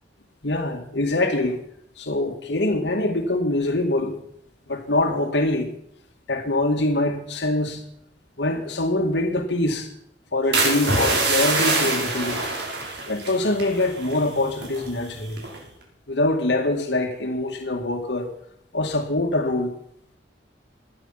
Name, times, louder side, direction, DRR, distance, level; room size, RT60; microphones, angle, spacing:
voice 1, 0.4-1.6 2.0-4.2 4.7-5.7 6.3-7.8 8.4-9.9 10.3-12.5 13.1-15.4 16.1-18.3 18.7-19.7, left 2 dB, 75° left, 2.3 m, -24 dB
sound 1, 10.5-14.3 14.5-14.9 15.4-15.7, right 3 dB, 70° right, 5.6 m, -24 dB
19.0 x 12.0 x 5.9 m
head